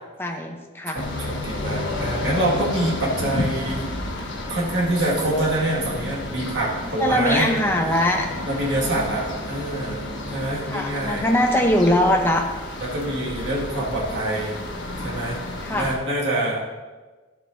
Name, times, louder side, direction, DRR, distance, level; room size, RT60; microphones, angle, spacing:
voice 1, 0.2-1.0 6.8-8.3 8.8-9.2 10.7-12.4 15.6-15.9, left 1 dB, 10° left, 2 dB, 0.7 m, -22 dB
voice 2, 0.9-3.9 4.5-7.6 8.4-11.3 12.8-14.6 15.0-15.4 15.7-16.6, right 1 dB, 60° right, -4 dB, 2.0 m, -25 dB
sound 1, 1.0-16.0, left 2 dB, 65° left, 1.4 m, -31 dB
12.5 x 7.9 x 2.7 m, 1.3 s
head